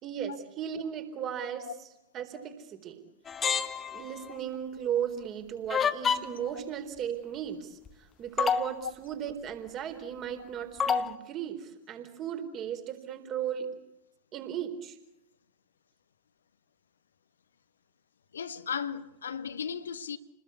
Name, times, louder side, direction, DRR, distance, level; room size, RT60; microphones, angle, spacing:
voice 1, 0.0-1.7 2.1-3.0 3.9-7.8 8.2-13.7 14.3-15.0, right 9 dB, 30° right, 4.0 m, -36 dB
sound 1, 3.3-4.2 5.7-6.5 7.9-8.0 8.4-8.8 10.8-11.1, left 6 dB, 20° left, 1.5 m, -28 dB
voice 2, 18.3-20.2, left 7 dB, 70° left, 1.4 m, -35 dB
29.5 x 20.5 x 8.5 m
figure-of-eight pair, 90°, 0 cm